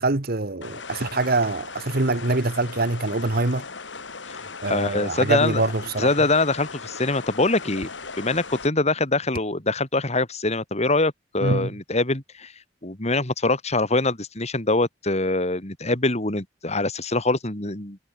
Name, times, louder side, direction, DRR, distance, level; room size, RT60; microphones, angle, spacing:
voice 1, 0.0-3.6 4.6-6.3 11.4-11.7, right 2 dB, 55° right, 1.5 m, -24 dB
sound 1, 0.6-8.7, left 4 dB, 70° left, 2.9 m, -38 dB
voice 2, 4.3-5.6 6.0-7.9 8.2-12.5 12.8-18.0, left 2 dB, 35° left, 3.2 m, -24 dB
head